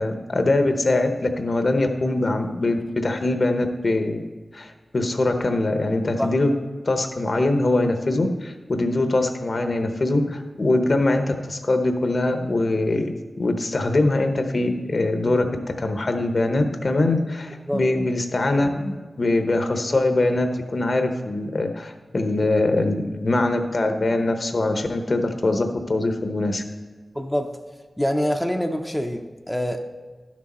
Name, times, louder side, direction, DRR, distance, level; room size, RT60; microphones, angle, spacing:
voice 1, 0.0-4.2 4.5-6.5 6.8-26.6, left 2 dB, 55° left, 6 dB, 0.9 m, -23 dB
voice 2, 27.1-27.6 28.0-29.8, equal, 5° left, 3 dB, 0.6 m, -25 dB
11.5 x 6.2 x 4.2 m, 1.4 s
wide cardioid pair, 75°, 0 cm